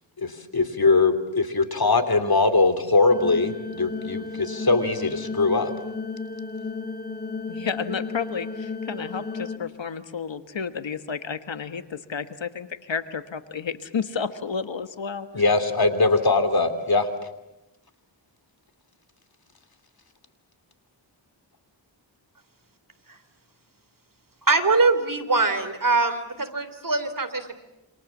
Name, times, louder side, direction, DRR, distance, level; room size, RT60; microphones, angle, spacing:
voice 1, 0.2-5.7 15.3-17.1, left 3 dB, 55° left, 9 dB, 3.1 m, -21 dB
sound 1, 3.1-9.6, left 4 dB, 20° left, 2.0 m, -33 dB
voice 2, 7.5-15.4, left 6 dB, 80° left, 10 dB, 1.5 m, -31 dB
voice 3, 24.5-27.6, right 3 dB, 45° right, 10 dB, 3.3 m, -23 dB
28.0 x 27.0 x 7.3 m, 0.92 s
wide cardioid pair, 55°, 44 cm